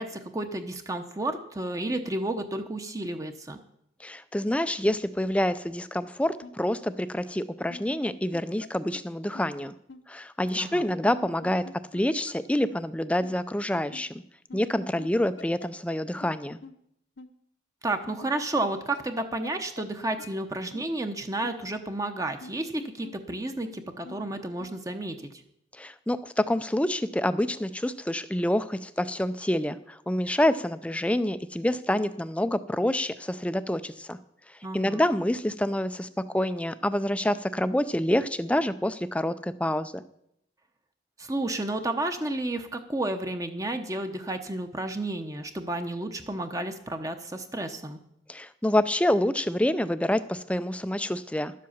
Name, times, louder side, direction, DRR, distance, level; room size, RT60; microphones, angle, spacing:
voice 1, 0.0-3.6 10.6-10.8 17.8-25.1 34.6-35.0 41.2-48.0, right 2 dB, 15° right, 6 dB, 0.8 m, -31 dB
voice 2, 4.0-9.7 10.1-11.6 11.9-14.2 14.5-16.6 25.8-34.2 34.7-36.1 36.3-40.0 48.3-51.5, left 1 dB, 5° left, 14 dB, 0.4 m, -27 dB
sound 1, 6.4-6.5 7.6-8.7 8.9-9.0 9.3-9.5 9.9-10.0 11.0-12.0 12.3-12.4 12.7-12.8 13.2-13.3 13.9-14.0 14.5-16.0 16.2-16.3 16.6-16.7 17.2-17.3 18.1-19.5 19.8-19.9 20.2-20.3 20.7-20.8 21.4-21.5 22.3-23.4 23.6-23.7 24.0-24.2 24.6-24.7, left 3 dB, 70° left, 0.9 m, -44 dB
12.0 x 7.6 x 7.2 m, 0.75 s
head